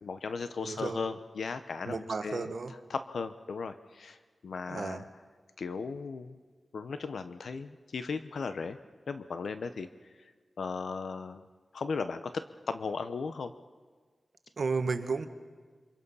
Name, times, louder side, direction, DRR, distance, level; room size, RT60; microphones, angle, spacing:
voice 1, 0.0-2.5 2.9-4.2 4.4-5.1 5.6-6.4 6.7-8.8 9.1-9.9 10.6-11.4 11.7-13.5, left 5 dB, 85° left, 10 dB, 0.8 m, -36 dB
voice 2, 0.7-1.1 1.9-2.7 4.7-5.0 14.6-15.3, right 4 dB, 60° right, 8 dB, 1.3 m, -33 dB
28.0 x 25.0 x 5.5 m, 1.5 s
wide cardioid pair, 130°, 0 cm